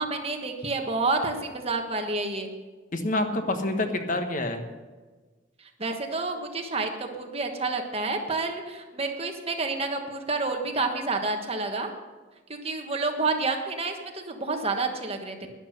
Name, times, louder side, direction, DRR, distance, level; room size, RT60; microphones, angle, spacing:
voice 1, 0.0-2.5 5.8-6.9 7.1-11.9 12.6-15.5, right 3 dB, 30° right, 4 dB, 1.4 m, -29 dB
voice 2, 2.9-4.6, left 2 dB, 45° left, 6 dB, 1.2 m, -27 dB
12.0 x 11.0 x 6.6 m, 1.3 s
head